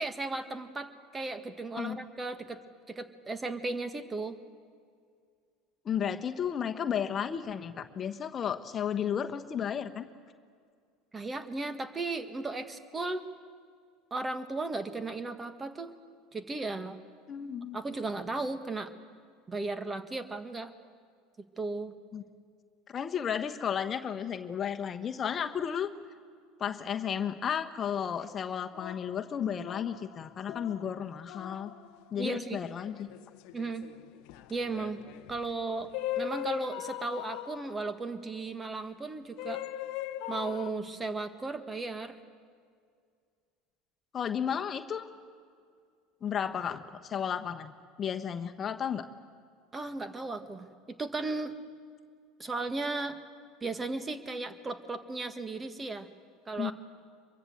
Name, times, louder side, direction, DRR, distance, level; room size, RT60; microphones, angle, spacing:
voice 1, 0.0-2.6 2.9-4.4 11.1-13.3 14.1-15.9 16.3-17.0 17.7-18.9 19.5-20.7 21.6-21.9 32.2-32.6 33.5-33.9 34.5-35.0 35.3-39.6 40.3-42.2 49.7-50.7 51.0-51.5 52.4-53.2 53.6-56.1 56.5-56.7, right 3 dB, 20° right, 10 dB, 1.7 m, -35 dB
voice 2, 5.8-10.1 17.3-17.8 22.1-22.2 22.9-25.9 26.6-31.7 32.1-33.1 44.1-45.1 46.2-47.7 48.0-49.1 56.6-56.7, left 8 dB, 35° left, 7 dB, 1.2 m, -33 dB
sound 1, 28.3-32.1 32.8-38.2 39.4-40.7, left 13 dB, 60° left, 0.9 m, -40 dB
24.5 x 23.5 x 7.9 m, 2.1 s
hypercardioid pair, 75°, 0 cm